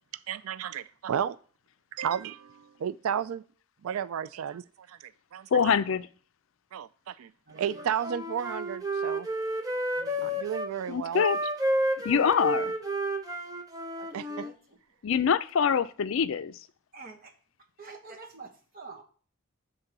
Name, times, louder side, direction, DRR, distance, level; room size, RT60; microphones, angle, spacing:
voice 1, 0.3-1.4 1.9-3.4 3.8-5.7 6.7-9.3 10.2-11.2 14.1-14.5, right 8 dB, 90° right, 16 dB, 0.4 m, -33 dB
voice 2, 5.5-6.1 10.9-11.4 12.0-12.7 15.0-16.6, left 6 dB, 70° left, 13 dB, 0.4 m, -24 dB
voice 3, 7.5-7.8 9.9-10.5 12.0-12.1 14.0-14.8 16.9-17.3 17.8-19.0, right 3 dB, 45° right, 2 dB, 1.2 m, -48 dB
Wind instrument woodwind instrument, 7.7-10.7 11.1-14.5, right 1 dB, 15° right, 0.7 m, -31 dB
6.6 x 3.7 x 5.9 m, 0.42 s
head